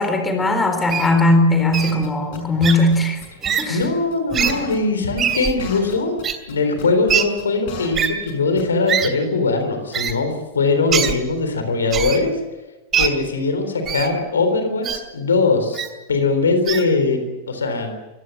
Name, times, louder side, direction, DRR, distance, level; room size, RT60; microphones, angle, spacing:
voice 1, 0.0-3.2 3.6-3.8, left 2 dB, 15° left, 6 dB, 4.0 m, -18 dB
Wild animals, 0.9-1.1 1.7-1.9 2.6-2.7 3.4-3.6 4.3-4.5 5.2-5.5 6.2-6.3 7.1-7.2 7.9-8.1 8.9-9.1 9.9-10.1 10.9-11.1 11.9-12.2 12.9-13.1 13.9-14.1 14.8-15.0 15.7-15.9 16.7-16.8, right 8 dB, 25° right, 2.7 m, -21 dB
sound 1, 1.7-3.0 3.2-3.3 3.5-4.2 4.4-5.0 5.3-6.2 6.5-8.0 8.3-8.4 8.6-8.9, left 6 dB, 50° left, 6.0 m, -36 dB
voice 2, 3.7-6.2 6.5-12.3 12.9-17.9, left 3 dB, 70° left, 7 dB, 3.8 m, -21 dB
24.0 x 17.0 x 7.5 m, 1.1 s
figure-of-eight pair, 90°, 0 cm